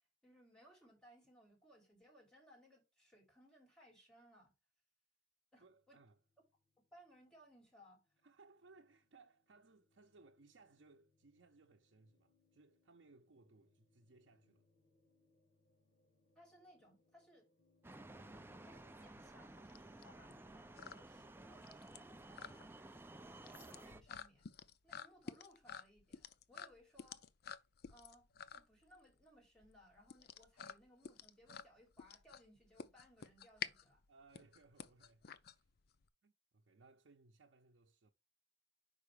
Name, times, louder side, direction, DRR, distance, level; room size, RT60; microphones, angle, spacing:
voice 1, 0.0-4.5 5.5-6.0 6.9-8.0 16.4-17.5 18.6-20.8 21.0-22.7 23.7-24.5 24.8-27.3 27.9-34.0, equal, 5° left, 4.1 m, -65 dB
sound 1, 5.6-18.7, left 3 dB, 85° left, 1.3 m, -78 dB
voice 2, 5.6-6.2 8.2-14.7 34.1-35.7 36.2-38.1, right 3 dB, 85° right, 0.6 m, -66 dB
sound 2, 17.8-24.0, right 2 dB, 10° right, 0.5 m, -55 dB
sound 3, 18.5-36.1, left 7 dB, 60° left, 0.5 m, -52 dB
5.5 x 4.7 x 4.9 m
head